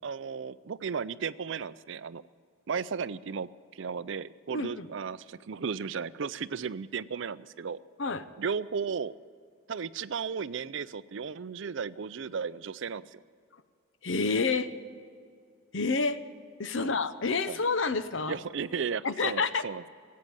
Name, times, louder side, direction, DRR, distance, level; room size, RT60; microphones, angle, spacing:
voice 1, 0.0-2.2 2.7-7.8 8.4-9.1 9.7-13.2 16.8-16.9 17.5-17.6 18.3-19.9, right 6 dB, 60° right, 16 dB, 0.4 m, -35 dB
voice 2, 4.5-4.9 8.0-8.2 14.0-14.7 15.7-16.2 16.6-18.4 19.0-19.6, left 4 dB, 60° left, 12 dB, 0.7 m, -28 dB
17.0 x 8.6 x 9.3 m, 2.1 s
head